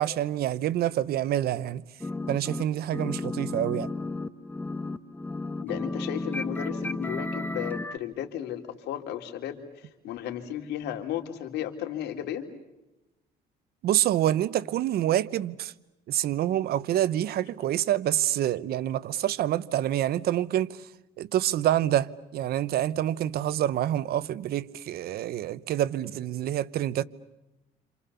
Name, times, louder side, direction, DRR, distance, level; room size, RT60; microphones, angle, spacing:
voice 1, 0.0-1.8 2.3-3.9 13.8-15.7 16.1-20.8 21.2-27.0, right 12 dB, 65° right, 0.9 m, -27 dB
sound 1, 2.0-2.6 2.9-8.0, left 2 dB, 10° left, 1.1 m, -33 dB
voice 2, 5.6-12.4, left 10 dB, 80° left, 3.2 m, -34 dB
28.5 x 28.0 x 7.0 m
cardioid pair, 110°, 17 cm